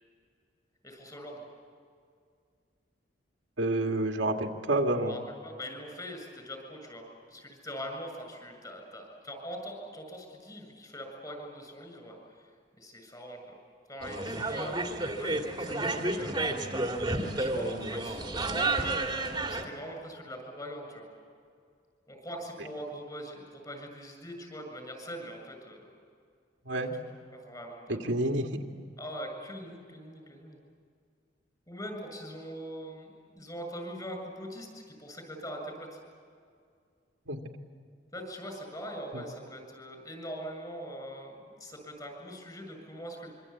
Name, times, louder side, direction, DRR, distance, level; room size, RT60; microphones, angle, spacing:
voice 1, 0.8-1.4 5.0-12.2 12.8-13.5 13.9-16.3 17.4-21.1 22.1-25.9 26.7-27.0 27.3-28.0 29.0-30.6 31.7-33.1 33.3-36.0 38.1-43.3, equal, 20° left, 4 dB, 7.2 m, -42 dB
voice 2, 3.6-5.1 26.7-26.9 27.9-28.6 37.3-37.4 39.1-39.2, right 1 dB, 80° right, 3 dB, 2.2 m, -29 dB
sound 1, 14.0-19.6, right 2 dB, 25° right, 2.2 m, -31 dB
26.0 x 25.0 x 8.6 m, 2.2 s
head